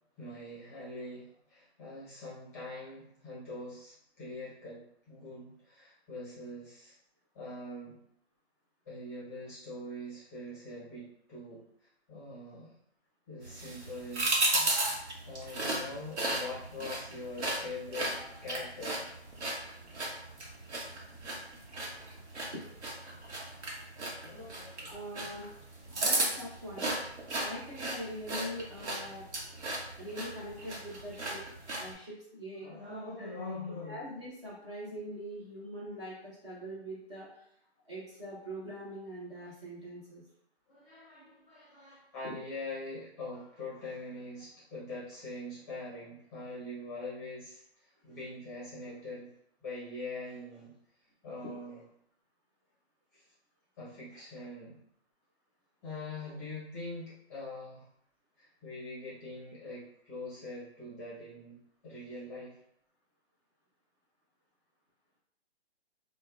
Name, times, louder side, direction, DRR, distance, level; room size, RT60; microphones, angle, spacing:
voice 1, 0.2-7.0 7.3-8.0 8.8-11.6 12.1-12.7 13.3-14.7 15.2-18.2 18.4-19.0 24.2-24.9 32.6-34.0 40.7-49.3 49.6-50.7 51.2-51.8 53.1-53.2 53.8-54.8 55.8-57.9 58.4-61.6 61.8-62.5, left 2 dB, 15° left, -9 dB, 0.7 m, -43 dB
sound 1, 13.4-31.9, right 2 dB, 85° right, 0.9 m, -35 dB
voice 2, 24.8-25.5 25.9-26.9 27.4-29.2 29.9-31.4 31.8-32.7 33.2-33.3 33.8-37.3 37.9-40.2, equal, 25° right, -8 dB, 0.6 m, -43 dB
2.6 x 2.1 x 2.3 m, 0.72 s
hypercardioid pair, 155°, 33 cm